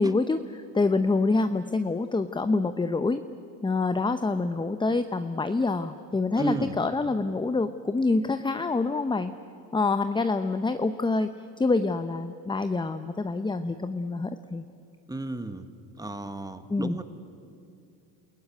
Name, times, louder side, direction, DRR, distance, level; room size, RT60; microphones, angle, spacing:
voice 1, 0.0-3.2 3.6-9.3 9.7-11.3 11.6-14.6 16.7-17.0, left 3 dB, 10° left, 10 dB, 0.7 m, -26 dB
voice 2, 6.4-6.7 15.1-15.7 16.0-17.0, right 2 dB, 10° right, 10 dB, 1.5 m, -32 dB
28.0 x 15.5 x 9.4 m, 2.5 s
supercardioid pair, 90°, 43 cm